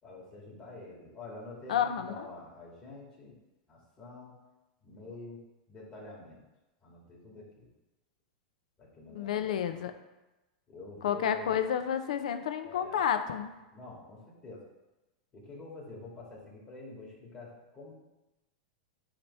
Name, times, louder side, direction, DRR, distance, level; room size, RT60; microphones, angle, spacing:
voice 1, 0.0-3.4 3.7-4.4 4.8-5.4 5.7-6.4 6.8-7.7 8.8-9.9 10.7-11.6 12.6-13.0 13.7-14.6 15.3-17.9, left 2 dB, 25° left, -4 dB, 2.2 m, -47 dB
voice 2, 1.7-2.2 9.1-9.9 11.0-13.5, left 9 dB, 80° left, 8 dB, 0.6 m, -30 dB
8.7 x 3.0 x 5.4 m, 1.0 s
supercardioid pair, 135°, 4 cm